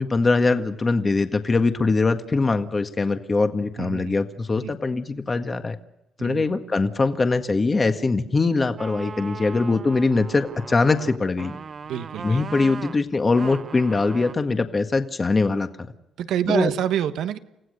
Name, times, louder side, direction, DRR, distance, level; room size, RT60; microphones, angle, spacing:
voice 1, 0.0-5.8 6.2-11.6 12.2-15.7 16.5-16.7, left 3 dB, 30° left, 7 dB, 1.7 m, -22 dB
voice 2, 3.8-4.2 4.5-4.7 6.2-6.4 11.8-12.4 16.2-17.4, right 10 dB, 80° right, 10 dB, 1.3 m, -27 dB
sound 1, 8.8-14.3, right 5 dB, 45° right, 0.8 m, -38 dB
29.5 x 16.0 x 6.6 m, 0.89 s
cardioid pair, 90°, 0 cm